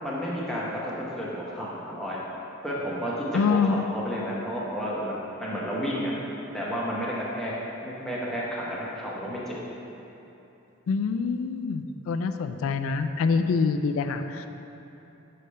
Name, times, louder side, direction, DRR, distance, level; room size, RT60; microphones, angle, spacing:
voice 1, 0.0-2.2 2.6-6.1 6.5-7.5 7.8-9.6, equal, ahead, -7 dB, 0.9 m, -31 dB
voice 2, 3.3-3.9 10.9-14.5, left 5 dB, 85° left, 8 dB, 0.3 m, -25 dB
6.5 x 3.3 x 5.4 m, 2.9 s
head